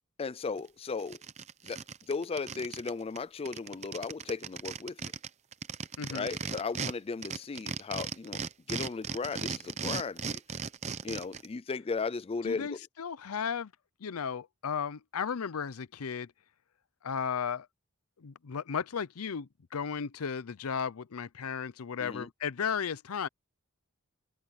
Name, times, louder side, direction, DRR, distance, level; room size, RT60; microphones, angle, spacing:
voice 1, 0.2-1.2 1.6-1.8 2.1-5.1 6.1-8.4 8.7-10.4 11.0-12.8 22.0-22.3, left 4 dB, 25° left, 0.4 m, -36 dB
sound 1, 0.6-0.7 1.0-2.9 3.2-3.3 3.5-6.9 7.2-11.5, right 6 dB, 30° right, 0.6 m, -37 dB
voice 2, 6.0-6.3 12.4-13.7 14.0-16.3 17.0-17.7 18.2-23.3, left 6 dB, 80° left, 0.6 m, -35 dB
open air
head